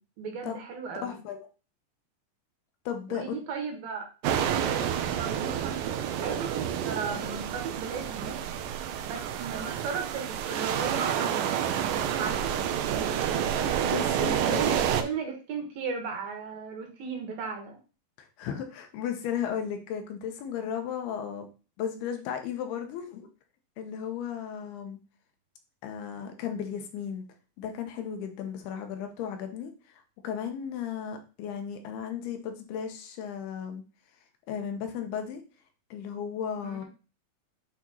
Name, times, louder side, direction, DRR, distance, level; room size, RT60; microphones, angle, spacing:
voice 1, 0.0-1.2 3.1-8.4 9.0-13.4 14.1-17.8 36.6-36.8, right 5 dB, 70° right, 3 dB, 2.7 m, -36 dB
voice 2, 1.0-1.5 2.9-3.2 13.8-14.6 18.4-21.5 21.8-23.3 23.8-25.0 25.8-27.2 27.6-33.8 34.5-35.4 35.9-36.9, left 8 dB, 90° left, 6 dB, 2.8 m, -35 dB
sound 1, 4.2-15.0, right 9 dB, 90° right, 2.0 m, -29 dB
8.6 x 3.0 x 4.0 m, 0.34 s
omnidirectional pair, 4.6 m